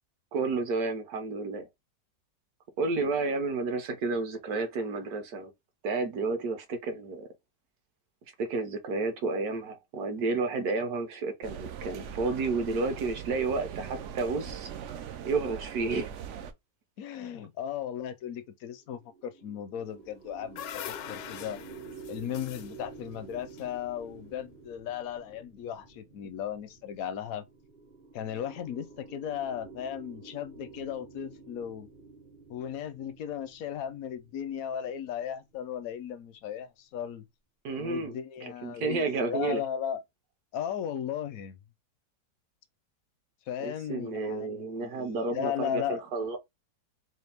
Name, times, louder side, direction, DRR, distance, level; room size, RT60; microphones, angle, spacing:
voice 1, 0.3-1.7 2.8-5.5 5.8-7.3 8.4-14.7 15.2-16.1 37.6-38.2 38.4-39.6 43.6-46.4, right 3 dB, 65° right, 1.2 m, -31 dB
sound 1, 11.4-16.5, right 8 dB, 80° right, 0.6 m, -41 dB
voice 2, 17.0-21.6 22.1-27.5 28.1-31.9 32.5-37.3 37.8-40.0 40.5-41.6 43.5-46.0, left 9 dB, 70° left, 0.8 m, -36 dB
sound 2, 18.8-36.3, right 4 dB, 45° right, 0.7 m, -50 dB
sound 3, 20.1-24.3, left 11 dB, 90° left, 1.2 m, -43 dB
4.3 x 2.4 x 3.3 m
omnidirectional pair, 1.9 m